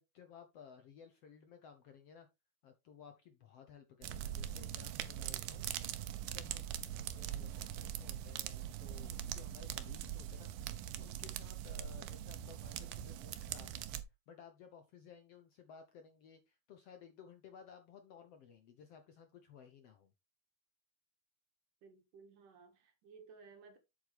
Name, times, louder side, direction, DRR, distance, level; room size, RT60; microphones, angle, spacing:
voice 1, 0.0-2.3 2.6-13.8 14.3-20.1, left 7 dB, 65° left, 1.6 m, -58 dB
sound 1, 4.0-14.0, right 11 dB, 90° right, 2.5 m, -42 dB
voice 2, 21.8-23.8, right 5 dB, 70° right, 3.2 m, -58 dB
8.0 x 7.9 x 3.3 m
omnidirectional pair, 3.9 m